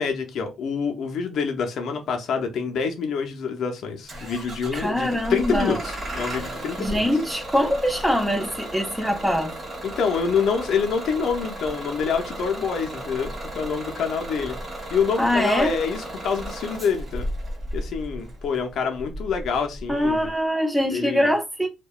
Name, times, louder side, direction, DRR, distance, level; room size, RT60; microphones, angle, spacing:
voice 1, 0.0-7.0 9.8-14.6 14.9-17.3 17.7-20.3 20.9-21.3, left 6 dB, 70° left, 0.5 m, -26 dB
Bus / Engine starting, 4.1-20.3, right 1 dB, 40° right, 1.5 m, -35 dB
voice 2, 4.7-5.8 6.8-9.5 15.2-15.7 19.9-21.7, equal, 5° right, 0.7 m, -23 dB
2.7 x 2.1 x 2.3 m
cardioid pair, 90°, 0 cm